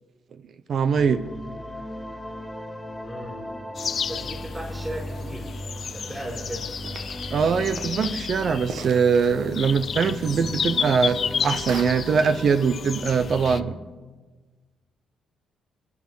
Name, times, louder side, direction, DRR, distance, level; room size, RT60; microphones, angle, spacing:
voice 1, 0.7-1.2 7.3-13.7, right 6 dB, 55° right, 12 dB, 0.8 m, -22 dB
sound 1, 1.0-13.7, equal, 5° left, 3.1 m, -37 dB
voice 2, 3.0-3.4 4.0-5.6 5.9-6.7, right 1 dB, 15° right, -2 dB, 5.3 m, -36 dB
sound 2, 3.8-13.6, left 7 dB, 50° left, 0.4 m, -32 dB
sound 3, 6.8-11.8, right 5 dB, 80° right, 1.4 m, -42 dB
23.5 x 11.0 x 5.6 m, 1.3 s
cardioid pair, 90°, 0 cm